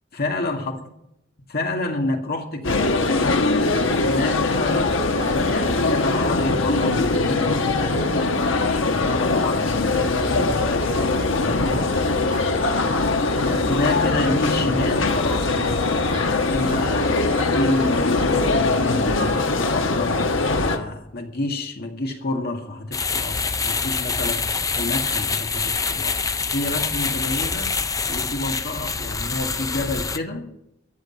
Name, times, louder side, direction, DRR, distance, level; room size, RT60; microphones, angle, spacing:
voice 1, 0.1-0.9 1.5-3.1 3.7-8.2 8.8-12.0 12.8-15.8 16.1-17.2 17.5-20.2 20.5-24.5 24.8-26.2 26.5-27.8 28.1-30.5, left 2 dB, 50° left, 2.0 m, -29 dB
sound 1, 2.6-20.8, left 3 dB, 70° left, 1.2 m, -21 dB
sound 2, 2.7-18.3, right 1 dB, 25° right, 4.5 m, -42 dB
sound 3, 22.9-30.2, left 5 dB, 15° left, 0.5 m, -25 dB
14.5 x 6.6 x 9.0 m
head